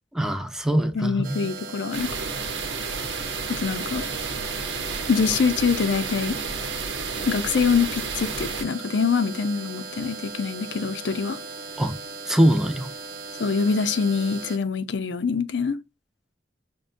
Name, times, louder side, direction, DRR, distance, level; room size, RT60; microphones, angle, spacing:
voice 1, 0.1-1.5 11.8-11.9 12.3-12.9, right 1 dB, 5° right, 0.5 m, -22 dB
voice 2, 0.9-2.1 3.5-4.1 5.1-6.4 7.3-11.4 13.4-15.8, left 5 dB, 80° left, 0.5 m, -24 dB
sound 1, 1.2-14.6, right 4 dB, 50° right, 0.8 m, -38 dB
sound 2, 1.9-8.6, right 5 dB, 90° right, 0.8 m, -31 dB
6.2 x 2.2 x 2.5 m
head